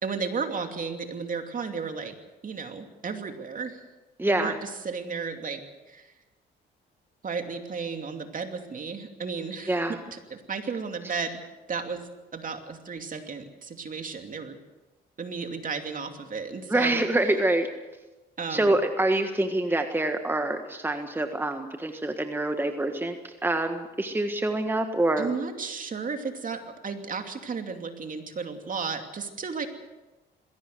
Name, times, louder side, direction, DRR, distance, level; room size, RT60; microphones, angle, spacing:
voice 1, 0.0-2.2 2.4-3.8 4.3-5.6 5.9-6.1 7.2-11.4 11.7-14.6 15.2-17.0 18.4-18.8 25.2-29.7, right 5 dB, 45° right, 6 dB, 2.7 m, -34 dB
voice 2, 4.2-4.6 9.7-10.0 16.7-17.7 18.5-25.3, right 1 dB, 10° right, 6 dB, 1.6 m, -26 dB
21.0 x 16.5 x 8.0 m, 1.1 s
cardioid pair, 90°, 20 cm